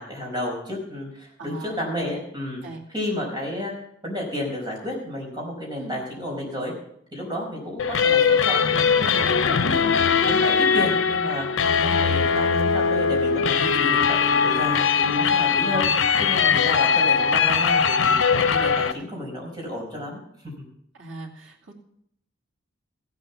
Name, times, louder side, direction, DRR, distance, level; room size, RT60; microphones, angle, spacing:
voice 1, 0.0-2.6 2.9-3.7 4.0-6.7 7.1-9.9 10.2-11.5 11.8-15.9 16.2-18.1 18.5-20.6, left 1 dB, 20° right, -2 dB, 4.9 m, -31 dB
voice 2, 1.4-1.8 2.6-2.8 5.8-6.0 21.0-21.7, right 2 dB, 80° right, -2 dB, 2.7 m, -39 dB
sound 1, 7.8-18.9, left 6 dB, 85° left, 0.8 m, -20 dB
15.0 x 8.0 x 7.0 m, 0.70 s
head